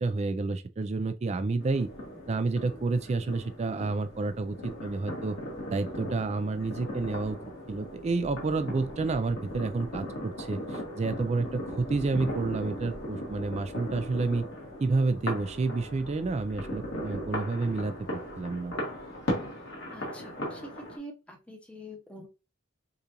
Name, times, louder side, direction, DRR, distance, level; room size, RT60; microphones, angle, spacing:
voice 1, 0.0-1.9 2.3-5.4 5.7-7.4 7.7-14.4 14.8-18.7, right 3 dB, 35° right, 0.3 m, -30 dB
sound 1, 1.6-21.0, equal, 60° left, 1.7 m, -38 dB
voice 2, 19.9-20.6 21.0-22.3, equal, 5° left, 0.8 m, -45 dB
6.6 x 2.4 x 2.9 m
head